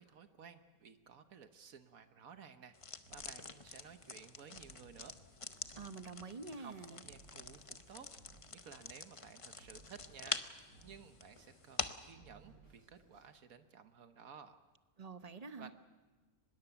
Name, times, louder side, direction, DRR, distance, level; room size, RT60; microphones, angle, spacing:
voice 1, 0.0-5.1 6.5-8.1 8.5-10.4 10.7-14.6 15.6-15.7, right 6 dB, 75° right, 9 dB, 1.4 m, -56 dB
sound 1, 2.7-12.1, left 4 dB, 30° left, 0.7 m, -46 dB
Drum kit, 3.1-13.3, right 2 dB, 90° right, 7.0 m, -64 dB
voice 2, 5.8-7.0 15.0-15.7, right 4 dB, 30° right, 10 dB, 0.9 m, -47 dB
24.0 x 21.0 x 7.0 m, 1.3 s
omnidirectional pair, 1.5 m